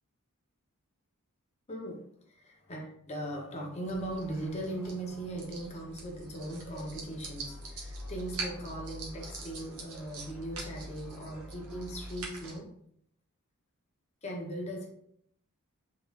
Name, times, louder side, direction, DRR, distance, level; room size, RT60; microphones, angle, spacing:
voice 1, 1.7-2.0 2.7-12.7 14.2-14.9, right 1 dB, 30° left, 0 dB, 0.7 m, -39 dB
sound 1, 3.9-12.6, right 2 dB, 85° right, 1.0 m, -43 dB
3.7 x 2.4 x 3.2 m, 0.69 s
head